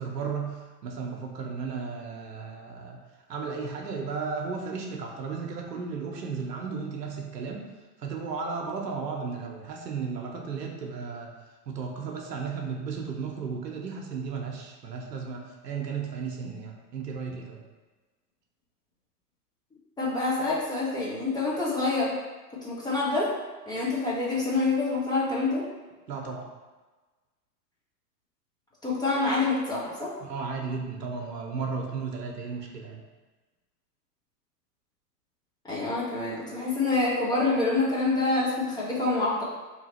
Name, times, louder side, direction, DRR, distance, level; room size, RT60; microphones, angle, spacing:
voice 1, 0.0-3.0 3.3-7.7 8.0-11.3 11.7-17.6 26.1-26.5 30.2-33.0, right 5 dB, 75° right, 1 dB, 0.8 m, -34 dB
voice 2, 20.0-22.2 22.5-23.3 23.7-25.7 28.8-30.1 35.6-39.4, left 3 dB, 10° left, -7 dB, 0.7 m, -26 dB
2.8 x 2.7 x 4.2 m, 1.2 s
figure-of-eight pair, 100°, 49 cm